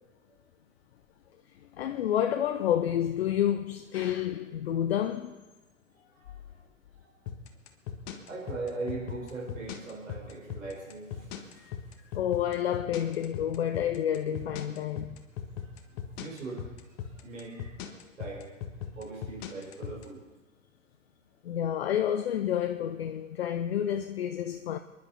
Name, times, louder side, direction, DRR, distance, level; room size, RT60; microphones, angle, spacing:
voice 1, 1.8-5.4 11.6-11.7 12.1-15.2 21.4-24.8, left 10 dB, 50° left, 0.8 m, -29 dB
sound 1, 7.3-20.0, left 9 dB, 35° left, 1.6 m, -38 dB
voice 2, 8.3-11.8 15.6-15.8 16.1-16.7 17.0-18.5 18.9-20.2, right 3 dB, 75° right, 4.3 m, -40 dB
29.0 x 11.0 x 4.1 m
figure-of-eight pair, 105°, 39 cm